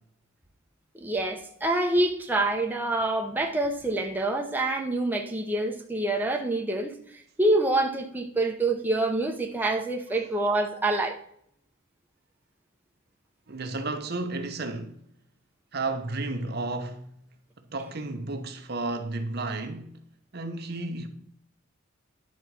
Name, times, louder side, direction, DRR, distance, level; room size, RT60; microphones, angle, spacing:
voice 1, 1.0-6.9 7.4-11.2, right 2 dB, 10° right, 0.8 m, -26 dB
voice 2, 13.5-15.0 15.7-17.1 17.7-20.0 20.3-21.1, right 2 dB, 50° right, 0.9 m, -32 dB
10.5 x 4.2 x 6.1 m
head